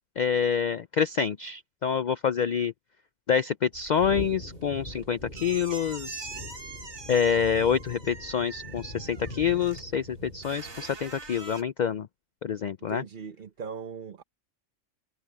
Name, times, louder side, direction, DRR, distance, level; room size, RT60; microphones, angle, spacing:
voice 1, 0.2-2.7 3.3-6.3 7.1-12.1 12.4-13.0, left 7 dB, 65° left, 0.4 m, -27 dB
sound 1, 3.7-11.6, right 3 dB, 75° right, 4.1 m, -44 dB
sound 2, 4.0-10.8, left 2 dB, 35° left, 2.5 m, -42 dB
voice 2, 12.8-14.2, right 6 dB, 45° right, 0.9 m, -39 dB
omnidirectional pair, 1.4 m